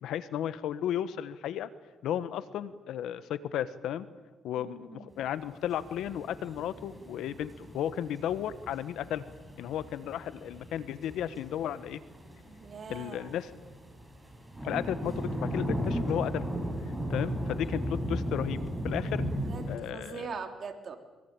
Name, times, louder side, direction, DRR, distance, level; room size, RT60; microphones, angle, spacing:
voice 1, 0.0-1.7 2.0-4.1 4.4-9.2 9.6-12.0 12.9-13.5 14.6-16.5 17.1-19.2 19.7-20.3, left 10 dB, 80° left, 14 dB, 1.3 m, -34 dB
voice 2, 4.6-5.1 12.5-13.4 19.5-21.0, right 5 dB, 50° right, 5 dB, 3.4 m, -42 dB
sound 1, 5.5-19.8, equal, 10° right, 6.5 m, -36 dB
23.5 x 23.0 x 8.9 m, 1.2 s
cardioid pair, 90°, 0 cm